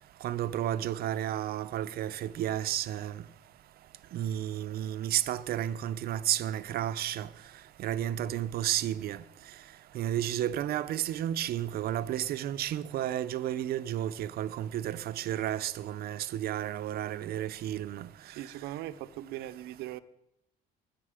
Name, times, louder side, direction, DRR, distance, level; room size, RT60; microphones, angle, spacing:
voice 1, 0.2-3.1 4.1-7.3 7.8-9.2 9.9-18.1, right 12 dB, 65° right, 0.7 m, -32 dB
voice 2, 18.3-20.0, right 14 dB, 90° right, 0.8 m, -40 dB
20.5 x 8.5 x 5.1 m
cardioid pair, 110°, 17 cm